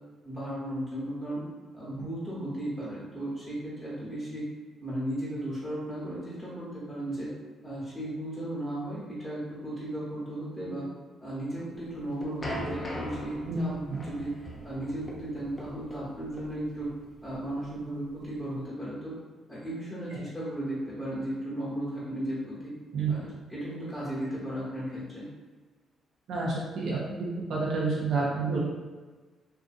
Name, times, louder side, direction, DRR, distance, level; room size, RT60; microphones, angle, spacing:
voice 1, 0.2-1.4 1.7-4.4 4.8-7.3 7.6-10.9 11.2-14.3 14.6-16.9 17.2-19.1 19.5-22.7 23.1-23.2 23.5-25.2, right 1 dB, 5° right, -9 dB, 1.0 m, -35 dB
sound 1, 11.8-18.6, equal, 25° left, 0.5 m, -40 dB
voice 2, 26.3-28.6, right 4 dB, 75° right, -6 dB, 0.5 m, -29 dB
2.5 x 2.4 x 2.5 m, 1.3 s
cardioid pair, 90°, 0 cm